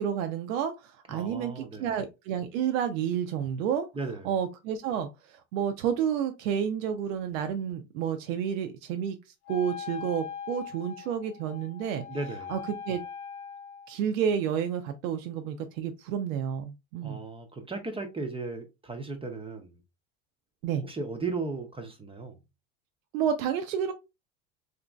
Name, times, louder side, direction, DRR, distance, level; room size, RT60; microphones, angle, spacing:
voice 1, 0.0-3.9 4.2-9.2 9.5-12.0 12.5-12.6 12.9-13.0 13.9-17.2 20.6-20.8 23.1-23.9, right 8 dB, 85° right, 0.5 m, -30 dB
voice 2, 1.1-1.9 3.9-4.3 12.1-12.5 17.0-19.8 20.8-22.4, right 3 dB, 15° right, 0.5 m, -36 dB
Wind instrument woodwind instrument, 9.5-14.0, left 7 dB, 45° left, 0.6 m, -41 dB
2.9 x 2.5 x 2.2 m
hypercardioid pair, 90°, 39 cm